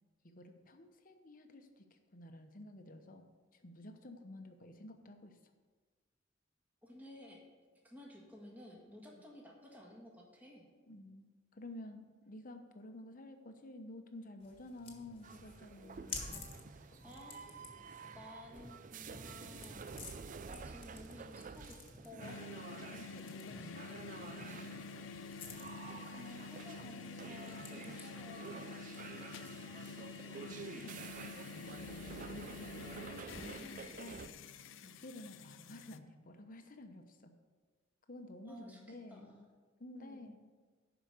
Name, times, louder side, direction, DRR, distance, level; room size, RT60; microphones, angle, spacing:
voice 1, 0.2-1.9 2.1-3.2 3.5-5.4 10.9-11.3 11.5-16.3 22.7-24.9 30.4-34.4 34.8-37.3 38.1-39.3 39.8-40.4, left 1 dB, 45° left, 6 dB, 1.0 m, -52 dB
voice 2, 6.8-7.4 7.8-10.7 17.0-17.6 18.1-22.5 25.9-28.6 38.4-39.5 39.9-40.4, left 1 dB, 10° right, -3 dB, 1.8 m, -54 dB
sound 1, 14.4-31.0, left 3 dB, 30° left, 1.6 m, -53 dB
sound 2, 15.2-34.3, right 5 dB, 45° right, 0.4 m, -50 dB
sound 3, 22.2-36.0, left 5 dB, 80° left, 0.5 m, -48 dB
11.5 x 5.0 x 6.7 m, 1.4 s
head